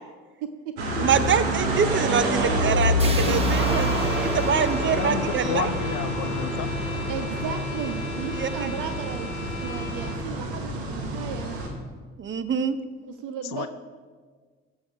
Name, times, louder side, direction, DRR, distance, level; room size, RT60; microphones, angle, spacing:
voice 1, 0.4-1.2 2.7-3.4 3.7-4.0 7.1-11.7 13.1-13.7, right 7 dB, 70° right, 8 dB, 0.7 m, -35 dB
sound 1, 0.8-11.7, equal, 85° right, 1.2 m, -27 dB
voice 2, 1.0-5.7 8.3-8.7 12.2-12.8, right 7 dB, 35° right, 13 dB, 0.7 m, -25 dB
sound 2, 3.0-7.1, right 2 dB, 20° right, 1.4 m, -39 dB
sound 3, 3.2-10.3, left 1 dB, 80° left, 1.2 m, -36 dB
voice 3, 4.9-6.7 13.4-13.7, left 13 dB, 65° left, 12 dB, 0.5 m, -31 dB
14.0 x 4.9 x 5.5 m, 1.5 s
hypercardioid pair, 50°, 32 cm